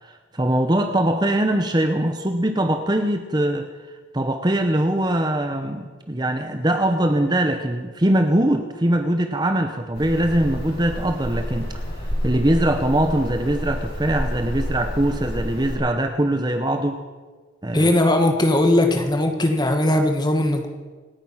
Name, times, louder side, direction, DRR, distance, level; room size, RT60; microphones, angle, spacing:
voice 1, 0.0-17.0 17.6-17.9, right 1 dB, 20° right, 6 dB, 0.8 m, -22 dB
sound 1, 9.9-15.8, equal, 55° left, 5.8 m, -29 dB
voice 2, 17.7-20.7, left 1 dB, 20° left, 5 dB, 1.5 m, -19 dB
27.0 x 9.3 x 5.7 m, 1.4 s
head